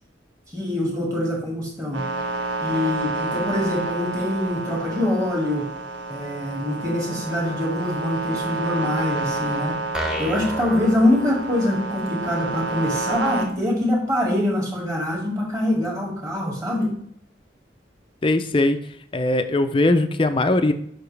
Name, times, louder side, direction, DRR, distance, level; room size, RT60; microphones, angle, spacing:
voice 1, 0.5-2.0 2.6-5.7 6.1-9.8 10.2-16.9, left 1 dB, 20° right, -2 dB, 1.9 m, -24 dB
sound 1, 1.9-13.4, right 3 dB, 85° right, 1.5 m, -29 dB
sound 2, 9.9-11.9, equal, 5° right, 0.7 m, -31 dB
voice 2, 18.2-18.8 19.1-20.7, left 2 dB, 30° left, 10 dB, 0.4 m, -20 dB
6.8 x 5.9 x 3.3 m, 0.68 s
head